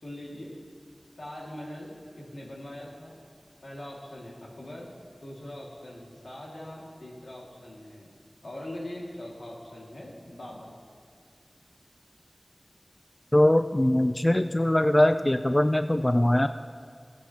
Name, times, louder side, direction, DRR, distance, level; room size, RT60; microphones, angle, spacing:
voice 1, 0.0-0.5 1.2-3.2 3.6-8.1 8.4-10.7, left 1 dB, 90° left, -4 dB, 2.1 m, -42 dB
voice 2, 13.3-16.5, left 1 dB, 25° left, 10 dB, 0.3 m, -22 dB
16.5 x 9.4 x 2.9 m, 2.2 s
wide cardioid pair, 40°, 0 cm